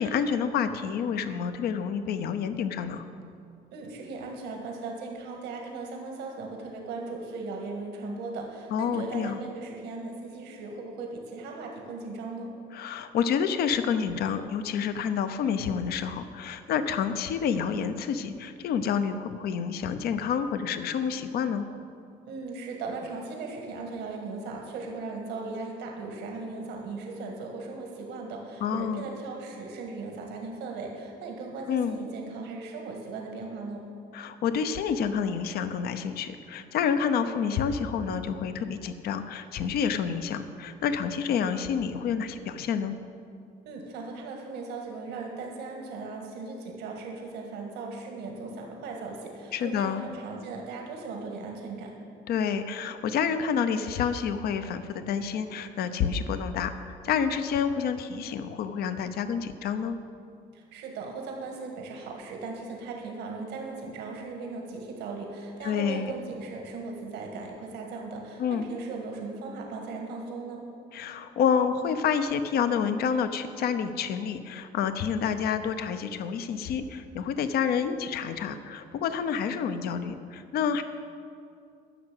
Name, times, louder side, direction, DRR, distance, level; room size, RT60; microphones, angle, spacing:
voice 1, 0.0-3.0 8.7-9.4 12.7-21.7 28.6-29.0 31.7-32.0 34.1-43.0 49.5-50.0 52.3-60.0 65.6-66.1 68.4-68.7 70.9-80.8, left 7 dB, 65° left, 10 dB, 0.7 m, -28 dB
voice 2, 3.7-12.5 22.3-33.9 43.6-52.0 60.5-70.7, right 3 dB, 85° right, 1 dB, 1.7 m, -38 dB
11.0 x 6.4 x 7.7 m, 2.4 s
cardioid pair, 110°, 17 cm